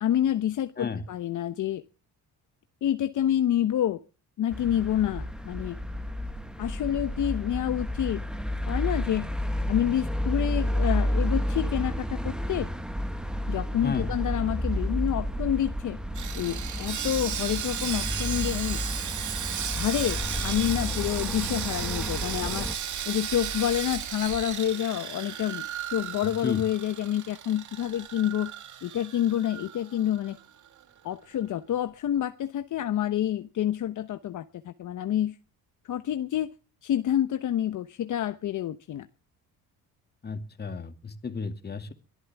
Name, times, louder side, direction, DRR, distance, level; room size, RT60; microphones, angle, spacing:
voice 1, 0.0-1.8 2.8-4.0 4.4-5.8 6.6-8.2 8.7-9.3 9.7-12.7 13.5-16.0 16.3-18.8 19.7-22.7 23.1-28.5 28.8-30.4 31.0-35.4 35.9-36.5 36.8-39.1, left 11 dB, 55° left, 10 dB, 1.0 m, -28 dB
sound 1, 4.5-22.7, left 1 dB, ahead, 1.4 m, -31 dB
Sawing, 16.1-30.4 30.7-30.8 31.3-31.4, right 9 dB, 50° right, 2.0 m, -35 dB
voice 2, 40.2-41.9, left 4 dB, 25° left, 8 dB, 2.3 m, -33 dB
23.0 x 12.5 x 3.5 m, 0.35 s
cardioid pair, 120°, 37 cm